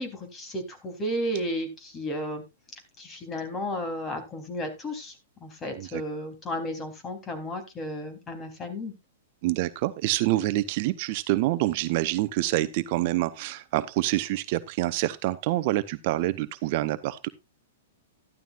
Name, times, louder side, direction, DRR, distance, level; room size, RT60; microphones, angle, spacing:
voice 1, 0.0-2.4 3.0-5.1 5.4-8.9, equal, 20° left, 7 dB, 3.4 m, -33 dB
voice 2, 9.4-17.3, right 16 dB, 50° right, 13 dB, 0.7 m, -27 dB
13.0 x 12.0 x 2.5 m, 0.24 s
hypercardioid pair, 110°, 0 cm